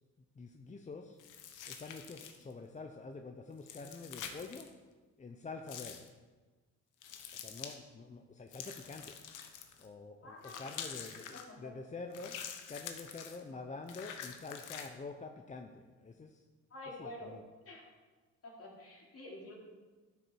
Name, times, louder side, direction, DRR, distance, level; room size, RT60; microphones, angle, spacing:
voice 1, 0.3-1.2 1.7-4.7 5.2-6.0 7.3-9.2 9.8-12.4 12.7-16.5 17.0-17.4, left 3 dB, 25° left, 4 dB, 0.7 m, -47 dB
sound 1, 1.2-2.5 3.6-4.7 5.7-6.1 7.0-7.8 8.5-9.9 10.4-11.4 12.1-13.4 13.9-14.9, left 8 dB, 90° left, 1.1 m, -46 dB
voice 2, 10.2-10.6 11.3-11.7 13.4-13.6 16.7-17.3 17.7-17.8 18.4-19.5, left 1 dB, 50° left, -3 dB, 3.5 m, -48 dB
12.0 x 6.6 x 4.7 m, 1.3 s
cardioid pair, 90°, 30 cm